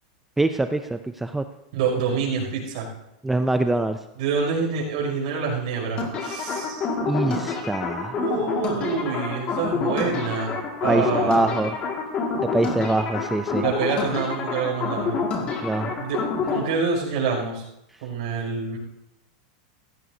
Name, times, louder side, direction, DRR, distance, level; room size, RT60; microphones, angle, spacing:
voice 1, 0.4-1.5 3.2-4.0 7.1-8.2 10.9-11.8 12.4-13.6 15.6-15.9, right 2 dB, 5° right, 8 dB, 0.4 m, -24 dB
voice 2, 1.7-2.9 4.2-6.9 8.2-10.5 10.8-11.5 13.6-15.2 15.9-16.2 16.5-17.6 18.0-18.8, right 5 dB, 55° right, -1 dB, 5.9 m, -26 dB
sound 1, 6.0-16.6, left 4 dB, 25° left, 2.0 m, -27 dB
16.0 x 15.5 x 2.7 m, 0.84 s
supercardioid pair, 160°, 4 cm